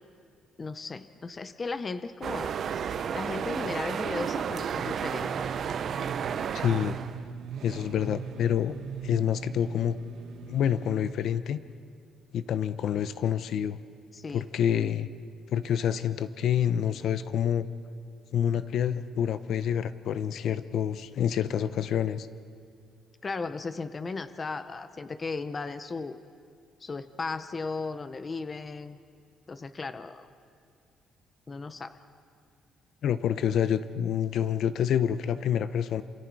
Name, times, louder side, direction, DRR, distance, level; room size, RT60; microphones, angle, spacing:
voice 1, 0.6-2.5 3.1-5.3 14.1-14.4 23.2-26.2 26.8-29.0 29.5-30.3 31.5-31.9, left 4 dB, 25° left, 11 dB, 0.8 m, -36 dB
sound 1, 2.2-7.2, right 7 dB, 50° right, 0.7 m, -32 dB
sound 2, 4.7-11.1, right 6 dB, 65° right, 1.6 m, -41 dB
voice 2, 6.5-7.0 7.6-8.8 9.0-10.0 10.4-11.6 12.3-13.8 14.3-15.1 15.5-17.7 18.3-22.3 33.0-36.0, left 9 dB, 60° left, 13 dB, 0.8 m, -27 dB
28.5 x 27.5 x 4.8 m, 2.3 s
cardioid pair, 155°, 0 cm